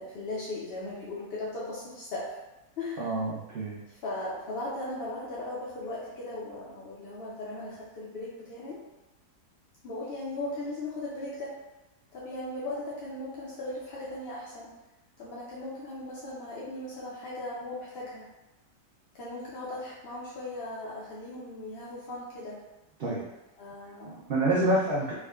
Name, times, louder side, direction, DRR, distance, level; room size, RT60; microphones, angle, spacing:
voice 1, 0.0-2.3 2.8-3.2 3.9-8.8 9.8-11.6 12.1-14.7 15.2-18.2 19.1-22.6 23.6-24.3, left 2 dB, 65° left, -7 dB, 0.6 m, -38 dB
voice 2, 3.0-3.8 23.0-23.2 24.3-25.1, right 1 dB, 80° right, -6 dB, 0.5 m, -27 dB
4.8 x 2.1 x 2.3 m, 1.0 s
omnidirectional pair, 1.7 m